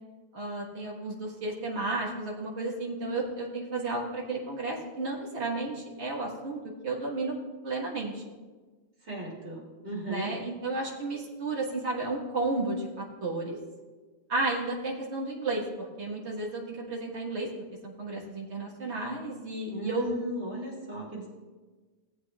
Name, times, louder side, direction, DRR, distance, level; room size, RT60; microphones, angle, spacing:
voice 1, 0.3-7.4 7.6-8.2 10.1-13.6 14.3-17.5 17.8-20.1, right 2 dB, 80° right, -3 dB, 1.9 m, -33 dB
voice 2, 9.0-10.3 19.7-21.3, right 1 dB, 60° right, -5 dB, 3.1 m, -37 dB
18.0 x 8.4 x 2.4 m, 1.4 s
omnidirectional pair, 1.1 m